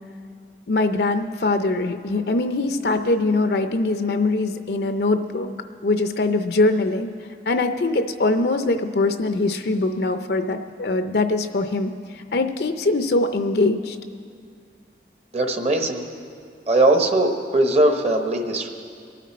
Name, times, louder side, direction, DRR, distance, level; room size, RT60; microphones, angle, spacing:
voice 1, 0.7-5.5 5.8-7.1 7.5-14.0, left 2 dB, 60° left, 8 dB, 0.5 m, -22 dB
voice 2, 15.3-16.0 16.7-18.7, right 2 dB, 35° right, 5 dB, 1.0 m, -20 dB
23.5 x 9.3 x 4.2 m, 2.2 s
head